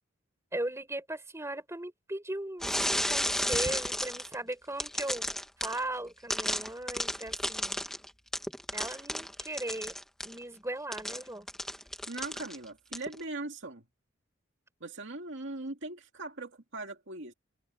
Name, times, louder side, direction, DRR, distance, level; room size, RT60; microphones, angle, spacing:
voice 1, 0.5-5.3 5.6-7.8 8.7-9.9 10.2-11.5, right 1 dB, 15° right, 5.3 m, -38 dB
sound 1, 2.6-4.3 4.8-5.8 6.3-10.4 10.9-12.6 12.9-13.2, left 1 dB, ahead, 1.4 m, -33 dB
voice 2, 12.1-13.8 14.8-17.3, right 2 dB, 65° right, 2.5 m, -40 dB
head